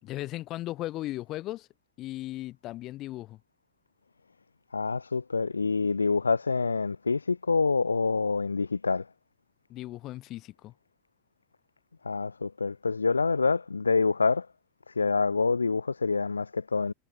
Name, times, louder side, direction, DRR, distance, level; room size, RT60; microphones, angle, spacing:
voice 1, 0.0-1.7 2.0-3.4 9.7-10.7, left 16 dB, 35° left, 5.2 m, -37 dB
voice 2, 4.7-9.1 12.0-14.5 14.9-16.9, left 4 dB, 75° left, 4.1 m, -26 dB
figure-of-eight pair, 90°, 0 cm